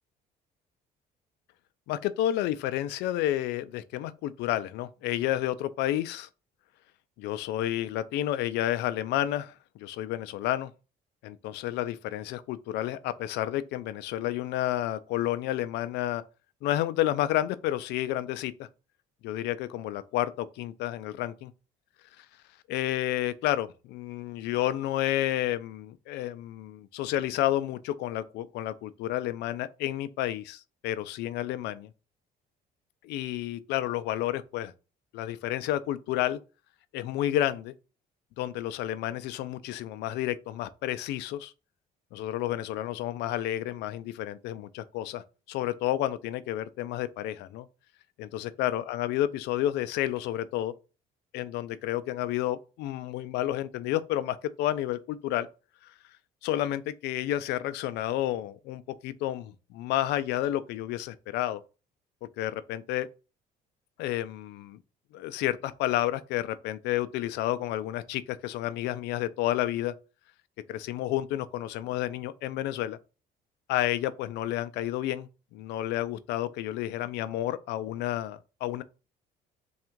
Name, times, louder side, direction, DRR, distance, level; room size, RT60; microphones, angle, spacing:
voice 1, 1.9-6.3 7.2-9.5 9.8-10.7 11.2-16.2 16.6-18.7 19.2-21.5 22.2-22.3 22.7-31.9 33.0-34.7 35.1-36.4 36.9-37.7 38.4-41.5 42.1-47.7 48.2-50.7 51.3-55.5 56.4-61.6 62.4-63.1 64.0-64.8 65.1-69.9 70.7-73.0 73.7-78.8, left 13 dB, 85° left, 0.4 m, -30 dB
3.5 x 2.4 x 4.4 m
cardioid pair, 110°, 17 cm